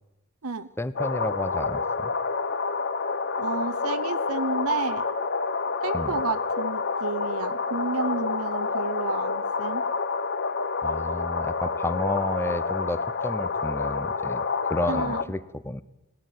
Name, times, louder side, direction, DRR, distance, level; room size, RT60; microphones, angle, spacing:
voice 1, 0.8-2.1 5.9-6.1 10.8-15.8, left 1 dB, 10° left, 16 dB, 0.8 m, -31 dB
sound 1, 1.0-15.2, left 4 dB, 50° left, 1.2 m, -28 dB
voice 2, 3.4-5.1 5.8-9.8 14.9-15.2, right 4 dB, 70° right, 12 dB, 0.9 m, -31 dB
20.0 x 17.0 x 9.5 m, 0.99 s
head